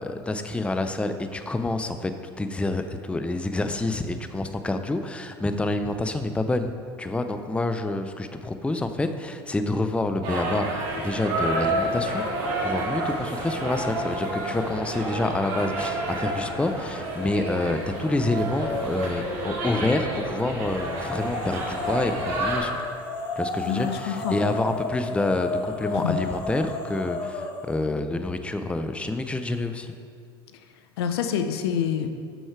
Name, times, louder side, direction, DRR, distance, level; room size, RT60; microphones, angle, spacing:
voice 1, 0.0-2.1 2.4-6.7 7.0-12.2 12.6-22.8 23.4-29.9, left 2 dB, 10° left, 8 dB, 0.5 m, -28 dB
sound 1, 10.2-22.6, right 2 dB, 65° right, 2.0 m, -30 dB
sound 2, 17.0-17.6 18.0-19.8 20.5-27.7, left 2 dB, 40° left, 1.2 m, -33 dB
voice 2, 23.7-24.4 26.0-26.2 31.0-32.1, left 8 dB, 75° left, 8 dB, 0.6 m, -26 dB
7.9 x 6.3 x 4.6 m, 2.2 s
hypercardioid pair, 80°, 13 cm